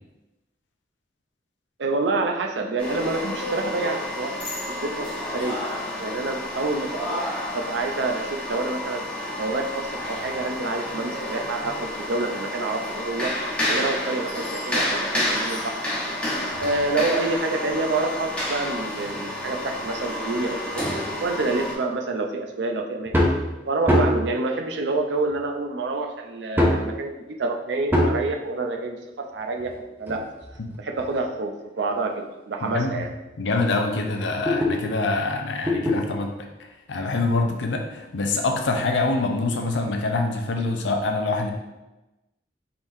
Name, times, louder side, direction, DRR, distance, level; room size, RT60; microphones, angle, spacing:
voice 1, 1.8-7.2 7.5-9.0 9.4-13.3 13.7-15.7 16.6-20.9 21.2-23.3 23.6-29.7 30.0-30.2 30.8-33.1, right 3 dB, 70° right, 3 dB, 0.5 m, -27 dB
sound 1, 2.8-21.7, left 1 dB, 5° left, 1.0 m, -30 dB
sound 2, 23.1-23.4 23.9-24.3 25.3-25.4 26.6-26.9 27.9-28.2 29.6-31.2 31.9-32.0 32.6-32.7 33.0-33.1 33.5-34.8 35.7-36.0 37.3-37.4, left 1 dB, 10° right, 0.6 m, -23 dB
voice 2, 32.6-33.0 33.4-36.3 36.9-41.5, left 3 dB, 85° left, 3 dB, 0.6 m, -25 dB
4.6 x 3.7 x 2.7 m, 1.0 s
head